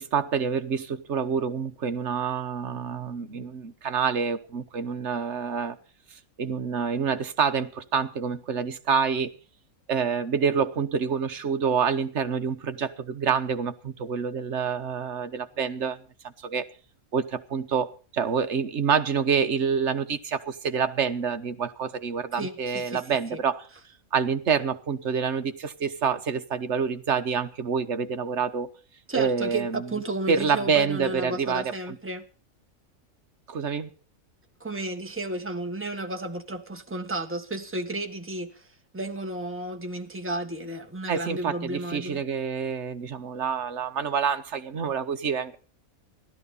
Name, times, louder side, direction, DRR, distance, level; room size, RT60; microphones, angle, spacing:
voice 1, 0.0-5.8 6.4-9.3 9.9-16.0 16.4-16.6 17.1-23.6 24.1-28.7 29.1-29.8 30.3-31.6 33.5-33.9 41.1-45.6, right 6 dB, 55° right, 1.4 m, -27 dB
voice 2, 22.3-23.0 23.3-23.4 29.1-32.3 34.6-38.7 38.9-42.2, right 2 dB, 10° right, 1.5 m, -32 dB
16.0 x 12.5 x 5.5 m
omnidirectional pair, 1.5 m